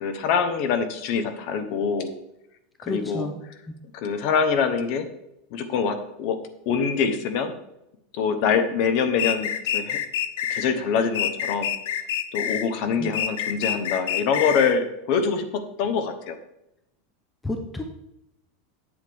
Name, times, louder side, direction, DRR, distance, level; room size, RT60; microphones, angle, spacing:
voice 1, 0.0-2.1 2.9-3.3 3.9-5.1 5.5-6.4 6.7-7.5 8.1-10.0 10.5-11.7 12.3-16.4, left 6 dB, 40° left, 9 dB, 0.8 m, -24 dB
voice 2, 2.8-3.4 13.0-13.1 17.4-17.8, left 2 dB, 5° left, 4 dB, 0.5 m, -31 dB
sound 1, 9.2-10.7 11.1-12.7 13.1-14.7, left 9 dB, 75° left, 0.6 m, -27 dB
8.0 x 7.7 x 3.5 m, 0.86 s
supercardioid pair, 175°, 0 cm